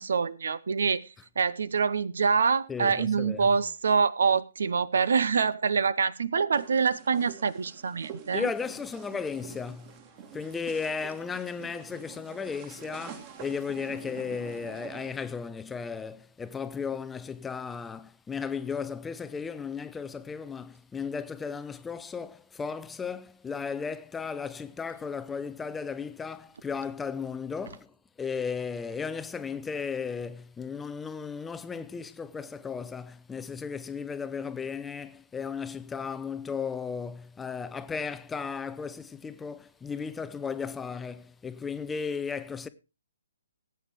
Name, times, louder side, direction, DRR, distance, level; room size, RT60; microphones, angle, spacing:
voice 1, 0.0-8.5, right 5 dB, 60° right, 0.8 m, -26 dB
voice 2, 2.7-3.5 8.3-10.0 10.3-42.7, left 5 dB, 10° left, 0.6 m, -35 dB
sound 1, 6.5-15.1, right 7 dB, 30° right, 2.2 m, -46 dB
19.0 x 9.2 x 3.1 m
figure-of-eight pair, 130°, 0 cm